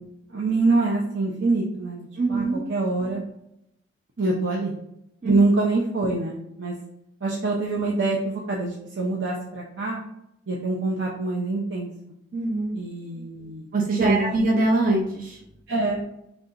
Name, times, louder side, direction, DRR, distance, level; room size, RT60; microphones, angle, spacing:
voice 1, 0.3-3.2 4.2-4.7 5.2-6.7 7.2-10.0 10.5-11.9 12.7-13.6 14.0-14.3 15.7-16.0, right 3 dB, 85° right, -3 dB, 0.8 m, -25 dB
voice 2, 2.2-2.6 5.2-5.3 12.3-12.8 13.7-15.4, right 2 dB, 50° right, -1 dB, 0.7 m, -23 dB
5.4 x 3.4 x 2.5 m, 0.81 s
head